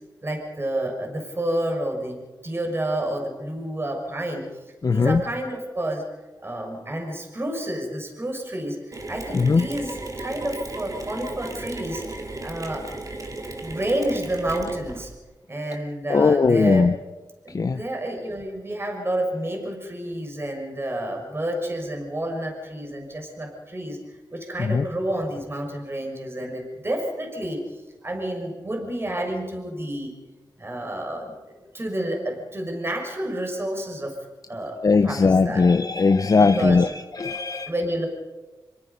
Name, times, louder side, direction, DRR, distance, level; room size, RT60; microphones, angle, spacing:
voice 1, 0.2-4.5 4.9-6.0 6.4-12.0 12.4-13.1 13.6-15.1 15.5-16.9 17.4-24.0 24.3-27.6 28.0-30.1 30.6-34.1 34.5-34.8 35.0-35.7 36.4-36.9 37.7-38.1, right 1 dB, 30° right, 2 dB, 6.3 m, -29 dB
voice 2, 4.8-5.2 9.3-9.6 16.1-16.9 17.5-17.8 24.6-24.8 34.8-36.9 37.2-37.7, left 4 dB, 50° left, 8 dB, 0.9 m, -19 dB
Mechanisms, 8.9-15.2, right 2 dB, 45° right, 3.1 m, -35 dB
26.5 x 23.0 x 5.4 m, 1.2 s
cardioid pair, 60°, 8 cm